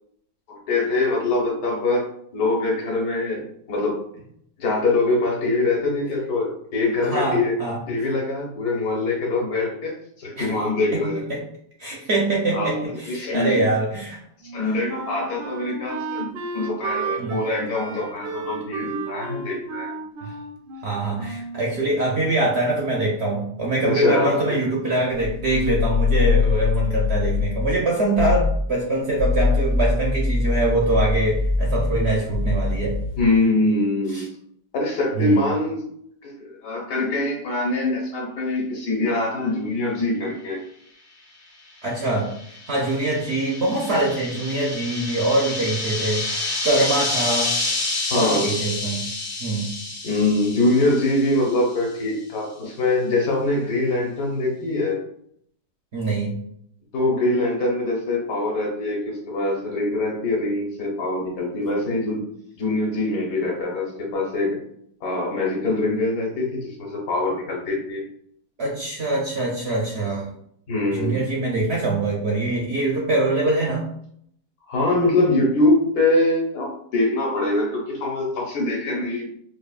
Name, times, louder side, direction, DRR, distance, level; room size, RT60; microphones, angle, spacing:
voice 1, 0.5-2.0 2.3-4.0 4.6-7.5 7.9-11.4 12.5-13.7 14.5-20.0 23.8-24.6 33.2-34.3 34.7-35.8 36.2-40.6 48.1-48.5 50.0-55.0 56.9-62.2 62.6-64.6 65.0-68.0 70.7-71.2 74.7-79.3, left 2 dB, 60° left, -2 dB, 1.4 m, -23 dB
voice 2, 7.0-7.8 10.4-10.6 10.9-11.0 11.8-14.2 14.6-14.8 17.2-17.4 20.2-20.3 20.8-32.9 34.1-34.3 35.2-35.4 41.8-47.5 48.1-49.0 49.4-49.7 55.9-56.4 68.6-70.3 70.9-73.9, right 2 dB, 60° right, -3 dB, 0.7 m, -23 dB
Wind instrument woodwind instrument, 14.4-21.7, right 4 dB, 80° right, 1.3 m, -33 dB
sound 1, 25.2-27.8 28.1-28.6 29.1-33.3, left 4 dB, 85° left, 1.4 m, -23 dB
sound 2, 41.9-51.7, left 2 dB, 40° left, 0.9 m, -29 dB
5.2 x 2.4 x 2.3 m, 0.68 s
omnidirectional pair, 1.9 m